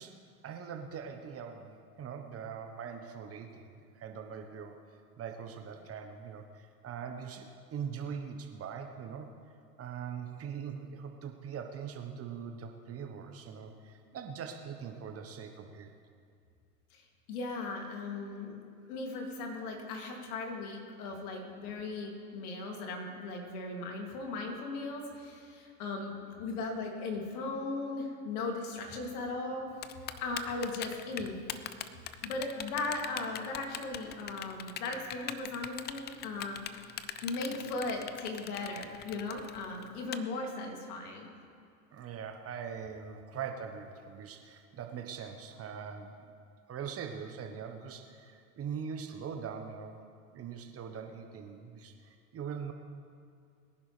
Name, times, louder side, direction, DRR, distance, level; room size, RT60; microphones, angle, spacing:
voice 1, 0.0-4.8 5.2-9.3 9.8-15.9 21.1-21.3 41.9-46.2 46.7-50.0 50.3-52.7, right 7 dB, 30° right, 5 dB, 1.2 m, -42 dB
voice 2, 17.3-18.6 18.9-29.7 30.2-31.4 32.2-36.9 37.2-41.3, left 3 dB, 70° left, 1 dB, 2.8 m, -37 dB
Typing, 29.8-40.2, left 11 dB, 25° left, 0.4 m, -40 dB
23.0 x 10.5 x 3.3 m, 2.4 s
hypercardioid pair, 100°, 47 cm